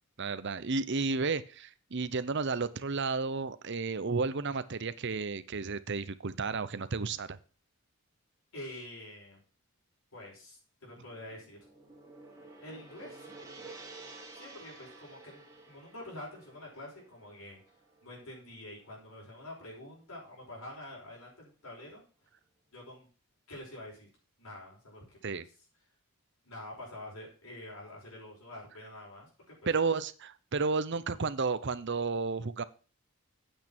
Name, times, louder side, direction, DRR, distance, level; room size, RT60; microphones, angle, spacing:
voice 1, 0.2-7.4 25.2-25.5 29.7-32.6, right 4 dB, 50° right, 14 dB, 0.7 m, -32 dB
voice 2, 8.5-9.4 10.1-11.6 12.6-13.2 14.4-17.6 18.0-22.0 22.7-23.1 23.5-24.1 24.4-25.4 26.4-29.7, left 1 dB, 70° left, -3 dB, 5.6 m, -47 dB
Gong, 11.1-19.4, right 3 dB, 15° right, 2.7 m, -52 dB
9.2 x 8.4 x 4.4 m, 0.36 s
head